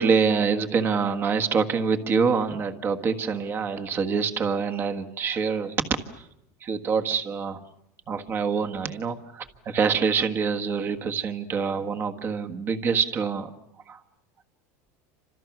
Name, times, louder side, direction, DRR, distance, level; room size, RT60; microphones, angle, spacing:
voice 1, 0.0-5.9 6.1-6.2 6.6-7.6 8.1-13.5 13.9-14.0, right 5 dB, 25° right, 6 dB, 1.5 m, -25 dB
30.0 x 26.5 x 6.1 m, 0.81 s
supercardioid pair, 155°, 9 cm